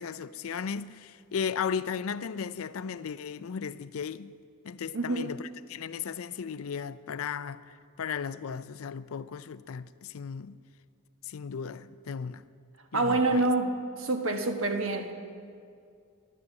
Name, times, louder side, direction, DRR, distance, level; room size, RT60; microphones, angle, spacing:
voice 1, 0.0-4.4 4.6-10.6 11.2-12.4 12.9-13.5, left 6 dB, 90° left, 0.5 m, -36 dB
voice 2, 4.9-5.3 12.9-15.1, right 2 dB, 70° right, 1.3 m, -27 dB
12.5 x 12.0 x 7.6 m
head